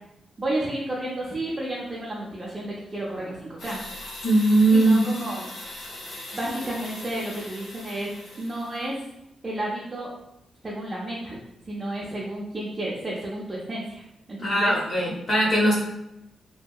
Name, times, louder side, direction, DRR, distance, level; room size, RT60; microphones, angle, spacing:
voice 1, 0.4-3.8 4.7-5.5 6.3-9.0 9.4-10.1 10.6-11.4 11.6-14.0 14.3-14.7, right 1 dB, 20° right, -5 dB, 0.4 m, -31 dB
sound 1, 3.6-9.0, left 1 dB, 75° left, 0.8 m, -40 dB
voice 2, 4.2-5.1 14.4-15.8, right 1 dB, 40° left, -4 dB, 0.6 m, -20 dB
2.8 x 2.7 x 2.3 m, 0.87 s
wide cardioid pair, 170°, 0 cm